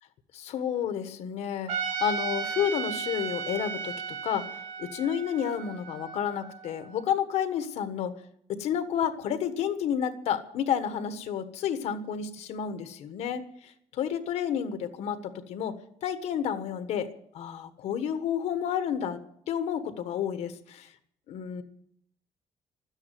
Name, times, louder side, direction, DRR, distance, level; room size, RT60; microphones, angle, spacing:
voice 1, 0.3-1.7 2.0-3.9 4.2-4.5 4.8-8.2 8.6-15.7 16.0-17.1 17.3-19.2 19.5-20.9 21.3-21.6, left 8 dB, 75° left, 10 dB, 1.4 m, -30 dB
Trumpet, 1.7-6.9, right 6 dB, 85° right, 2.9 m, -35 dB
13.0 x 9.8 x 9.3 m, 0.69 s
cardioid pair, 175°, 11 cm